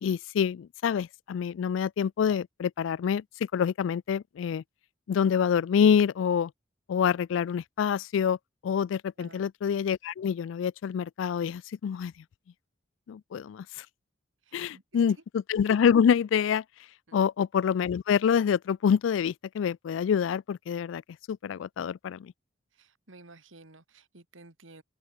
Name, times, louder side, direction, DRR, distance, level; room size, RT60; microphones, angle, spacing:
voice 1, 0.0-3.2 3.5-4.6 5.1-6.5 6.9-8.4 8.6-12.1 13.1-13.9 14.5-16.6 17.1-21.0 21.3-22.3, left 7 dB, 75° left, 0.3 m, -26 dB
voice 2, 14.4-15.0 17.1-17.2 22.7-24.8, right 2 dB, 85° right, 2.6 m, -53 dB
head